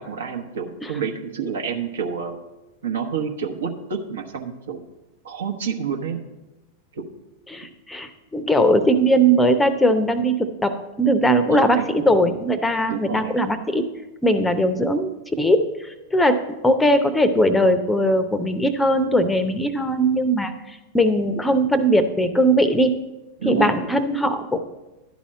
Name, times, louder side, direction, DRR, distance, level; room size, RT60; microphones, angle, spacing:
voice 1, 0.0-2.4 2.8-4.8 5.2-6.2 6.9-7.0 11.2-11.9 12.9-13.4 23.4-23.8, right 7 dB, 65° right, 4 dB, 1.0 m, -28 dB
voice 2, 7.5-13.9 14.2-15.1 15.4-16.4 16.6-22.9 23.4-24.6, equal, 10° left, 11 dB, 0.6 m, -20 dB
11.5 x 4.2 x 7.3 m, 1.0 s
figure-of-eight pair, 90°, 0 cm